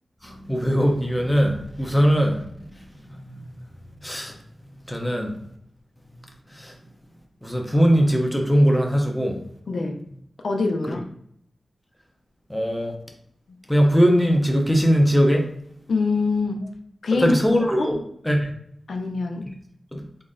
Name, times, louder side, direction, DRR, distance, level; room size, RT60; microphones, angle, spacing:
voice 1, 0.2-2.4 2.7-3.7 4.0-4.3 4.9-5.3 6.5-6.8 7.4-9.4 12.5-12.9 13.7-15.5 17.2-18.0 18.2-18.5 19.9-20.0, equal, 5° left, 1 dB, 0.6 m, -20 dB
voice 2, 9.7-10.0 10.4-11.1 13.5-13.6 15.9-16.7 17.0-17.4 17.8-17.9 18.9-19.5, left 3 dB, 75° left, 3 dB, 0.4 m, -24 dB
3.9 x 3.6 x 2.5 m, 0.68 s
wide cardioid pair, 135°, 0 cm